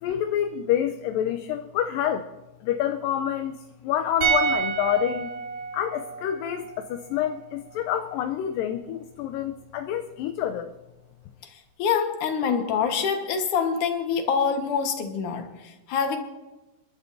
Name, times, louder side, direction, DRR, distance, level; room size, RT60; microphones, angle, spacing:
voice 1, 0.0-2.3 2.6-5.3 5.7-10.7, left 10 dB, 80° left, 8 dB, 2.2 m, -27 dB
sound 1, 4.2-7.4 7.7-7.8, right 6 dB, 75° right, 3.7 m, -29 dB
voice 2, 11.8-16.2, left 6 dB, 65° left, 5 dB, 2.7 m, -25 dB
30.0 x 12.0 x 2.7 m, 1.1 s
omnidirectional pair, 4.1 m